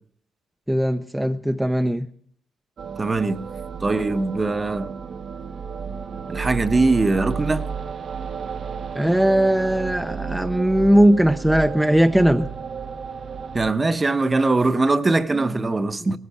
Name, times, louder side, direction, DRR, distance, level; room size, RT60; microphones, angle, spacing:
voice 1, 0.7-2.1 8.9-12.5 15.3-15.7 16.0-16.2, equal, 5° right, 0.6 m, -19 dB
sound 1, 2.8-13.7, right 6 dB, 50° right, 0.9 m, -32 dB
voice 2, 3.0-3.4 3.8-4.9 6.3-7.6 13.5-16.2, right 3 dB, 25° right, 0.9 m, -21 dB
18.5 x 14.0 x 4.8 m
cardioid pair, 90°, 0 cm